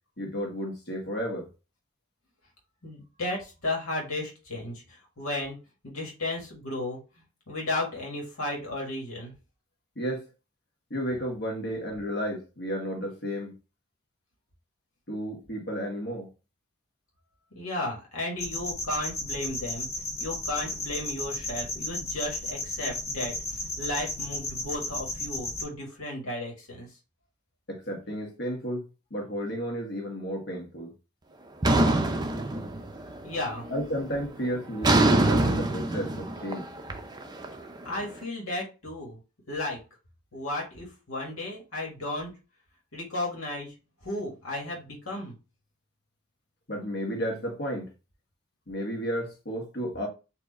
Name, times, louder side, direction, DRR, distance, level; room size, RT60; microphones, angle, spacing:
voice 1, 0.2-1.5 10.0-10.3 10.9-13.6 15.1-16.3 27.7-28.8 29.1-30.9 33.7-36.7 46.7-47.9 48.7-50.1, equal, 50° left, 1.7 m, -32 dB
voice 2, 2.8-5.6 5.8-7.0 7.5-9.3 17.5-19.9 20.2-26.9 33.2-33.7 37.8-39.2 39.5-39.8 40.3-42.3 42.9-43.7 44.0-45.3, left 2 dB, 80° left, 1.8 m, -34 dB
sound 1, 18.4-25.6, left 2 dB, 30° left, 1.5 m, -34 dB
sound 2, 31.6-33.2 33.5-33.9 34.8-37.9, right 2 dB, 20° right, 0.5 m, -24 dB
4.5 x 2.8 x 4.1 m
head